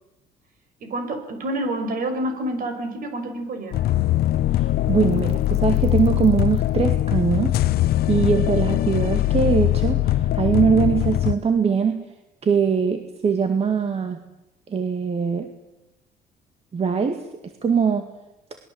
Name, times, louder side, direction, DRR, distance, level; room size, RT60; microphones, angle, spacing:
voice 1, 0.8-3.9, right 1 dB, 55° right, 8 dB, 5.9 m, -28 dB
sound 1, 3.7-11.3, left 14 dB, 65° left, 0.8 m, -21 dB
voice 2, 4.5-7.6 8.1-12.0 12.4-14.2 14.7-15.5 16.7-17.3 17.6-18.1, right 6 dB, 35° right, 7 dB, 2.0 m, -22 dB
27.5 x 21.0 x 8.0 m, 0.94 s
cardioid pair, 110°, 17 cm